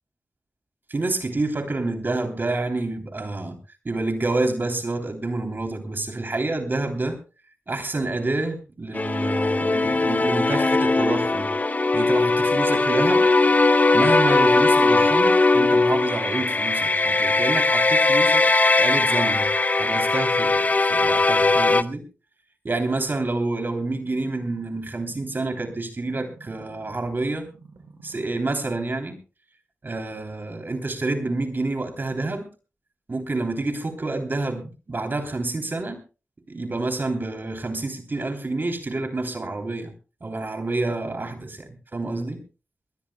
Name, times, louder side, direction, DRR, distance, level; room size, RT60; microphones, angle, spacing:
voice 1, 0.9-3.6 3.8-7.2 7.7-11.5 11.9-13.3 13.9-18.4 18.8-19.5 19.7-22.1 22.6-27.5 28.0-29.2 29.8-32.5 33.1-36.0 36.5-39.9 40.2-42.4, right 2 dB, 45° right, 3.2 m, -28 dB
sound 1, 8.9-21.8, left 3 dB, 35° left, 0.7 m, -19 dB
sound 2, 23.9-27.1 27.4-28.4 29.0-29.1, right 4 dB, 75° right, 5.2 m, -49 dB
21.5 x 19.5 x 2.2 m
cardioid pair, 50°, 5 cm